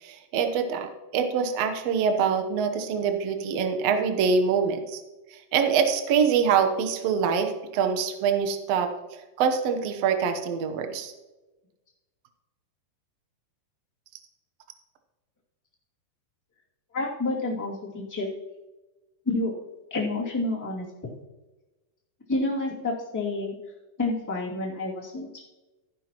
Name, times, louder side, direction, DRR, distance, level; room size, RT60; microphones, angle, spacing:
voice 1, 0.0-5.0 5.3-11.1, right 6 dB, 75° right, 6 dB, 1.5 m, -25 dB
voice 2, 16.9-18.3 19.2-19.5 19.9-20.9 22.3-23.5 24.0-25.3, left 2 dB, 5° left, -5 dB, 1.6 m, -29 dB
13.0 x 10.5 x 3.0 m, 1.1 s
omnidirectional pair, 4.4 m